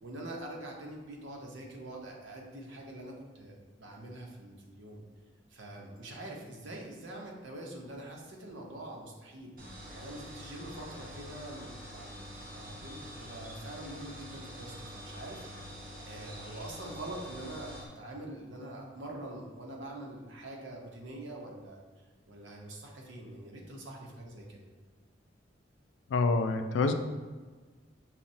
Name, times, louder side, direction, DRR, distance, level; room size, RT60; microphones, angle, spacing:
voice 1, 0.0-5.0 5.5-9.6 9.9-12.1 12.4-24.6, right 1 dB, 80° right, -1 dB, 0.7 m, -45 dB
sound 1, 9.6-17.9, equal, 50° right, 0.8 m, -46 dB
voice 2, 26.1-26.9, left 3 dB, 75° left, 8 dB, 0.3 m, -27 dB
5.8 x 2.0 x 2.6 m, 1.4 s
head